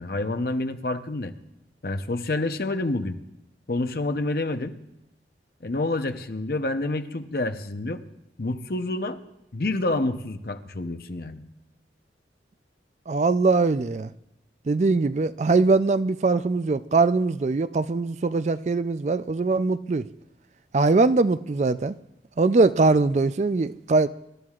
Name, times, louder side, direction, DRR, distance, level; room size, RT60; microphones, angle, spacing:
voice 1, 0.0-1.3 1.8-3.2 3.7-4.8 5.6-8.0 8.4-9.2 9.5-11.4, left 2 dB, 55° left, 0.8 m, -28 dB
voice 2, 13.1-14.1 14.7-20.1 20.7-21.9 22.4-24.1, right 3 dB, 40° right, 0.4 m, -21 dB
25.0 x 12.5 x 2.4 m
head